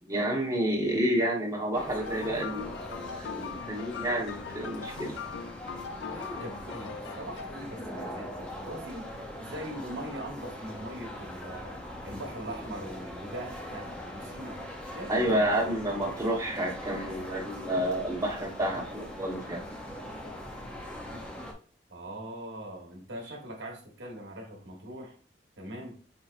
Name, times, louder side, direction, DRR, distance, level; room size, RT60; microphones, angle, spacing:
voice 1, 0.0-5.1 15.1-19.6, right 1 dB, 20° right, -2 dB, 1.1 m, -30 dB
sound 1, 1.7-21.5, equal, 5° left, 0.6 m, -41 dB
sound 2, 2.0-7.8, left 6 dB, 75° left, 0.3 m, -41 dB
voice 2, 6.1-11.8 12.0-14.6 14.9-15.4 21.9-25.1 25.6-26.0, right 1 dB, 80° right, 1 dB, 1.3 m, -41 dB
5.4 x 2.9 x 2.5 m, 0.42 s
head